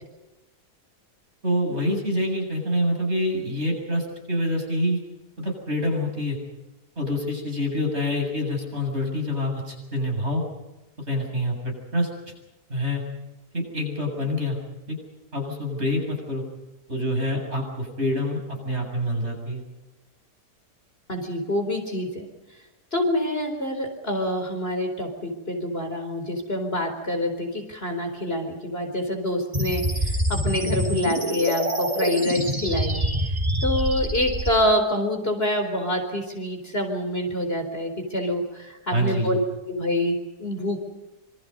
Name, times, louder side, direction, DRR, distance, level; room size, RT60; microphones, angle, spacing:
voice 1, 1.4-5.0 5.4-6.4 7.0-10.4 11.1-12.1 12.7-13.0 13.5-14.6 14.9-15.0 15.3-16.4 16.9-19.6 38.9-39.4, left 1 dB, 40° right, 1 dB, 7.8 m, -26 dB
voice 2, 21.1-22.2 22.9-33.0 33.6-39.4 39.7-40.8, left 1 dB, 35° left, 4 dB, 4.4 m, -26 dB
sound 1, 29.5-34.5, equal, 20° right, 4.3 m, -26 dB
27.0 x 25.5 x 5.5 m, 1.0 s
omnidirectional pair, 1.7 m